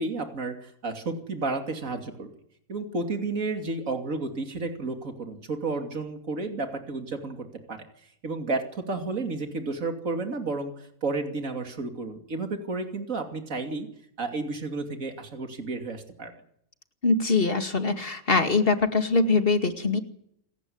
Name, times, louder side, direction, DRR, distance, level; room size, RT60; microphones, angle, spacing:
voice 1, 0.0-2.3 2.7-7.8 8.2-13.9 14.2-16.3, right 3 dB, 70° right, 5 dB, 3.1 m, -32 dB
voice 2, 17.0-20.0, left 3 dB, 40° left, 7 dB, 2.4 m, -23 dB
28.0 x 15.0 x 9.6 m, 0.71 s
omnidirectional pair, 1.4 m